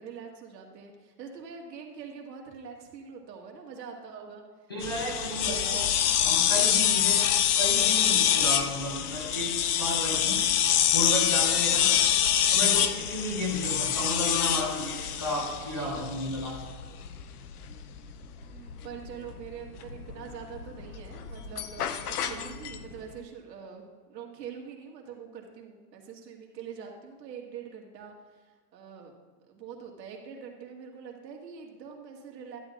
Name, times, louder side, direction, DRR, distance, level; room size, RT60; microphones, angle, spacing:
voice 1, 0.0-4.4 5.1-5.9 10.3-10.5 11.5-12.7 18.5-28.4 28.7-29.1 29.5-32.6, right 6 dB, 85° right, 1 dB, 2.1 m, -44 dB
voice 2, 4.7-7.2 7.5-10.4 10.9-12.0 12.5-16.5, left 1 dB, 15° left, -5 dB, 0.4 m, -33 dB
sound 1, 4.8-22.9, left 10 dB, 65° left, 0.7 m, -26 dB
11.0 x 10.5 x 2.5 m, 1.4 s
supercardioid pair, 175°, 48 cm